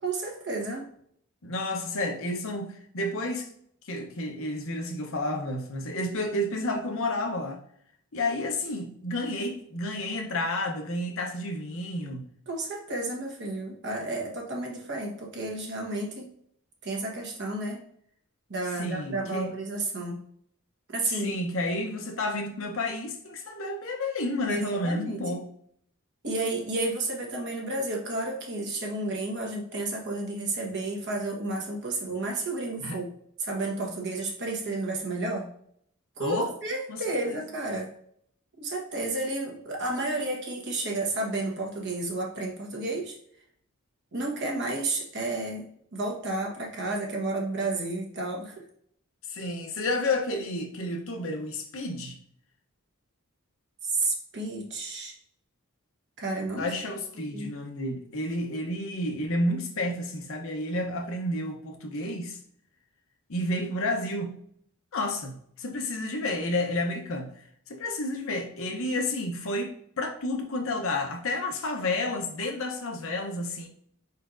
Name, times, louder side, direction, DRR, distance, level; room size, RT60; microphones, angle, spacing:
voice 1, 0.0-0.9 12.5-16.3 16.8-17.8 18.5-20.2 20.9-21.3 24.5-25.3 26.2-33.1 33.4-35.5 36.2-37.9 38.6-43.2 44.1-45.7 45.9-48.6 53.8-55.1 56.2-56.7 57.3-57.5, right 2 dB, 55° right, 1.2 m, -31 dB
voice 2, 1.4-3.5 3.8-7.6 8.1-12.2 18.8-19.5 21.1-25.5 32.8-33.0 36.2-36.5 36.9-37.4 49.3-52.2 56.6-62.4 63.3-64.3 64.9-67.3 67.7-73.7, left 1 dB, 65° left, 0.8 m, -31 dB
4.6 x 4.2 x 2.5 m
head